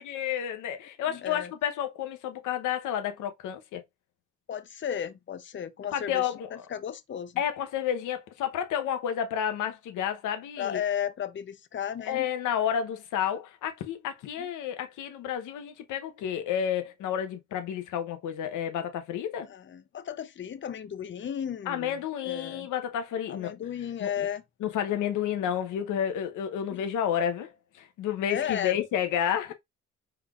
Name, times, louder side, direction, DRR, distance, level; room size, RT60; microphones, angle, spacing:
voice 1, 0.0-3.8 5.9-6.6 7.4-10.8 12.0-19.5 21.7-23.5 24.0-24.3 24.6-29.5, left 9 dB, 85° left, 0.9 m, -30 dB
voice 2, 1.1-1.5 4.5-6.3 6.7-7.4 10.6-12.3 14.4-14.5 19.4-22.7 23.3-24.4 26.7-26.8 28.3-28.9, left 9 dB, 40° left, 0.6 m, -34 dB
4.5 x 3.9 x 2.4 m
cardioid pair, 90°, 30 cm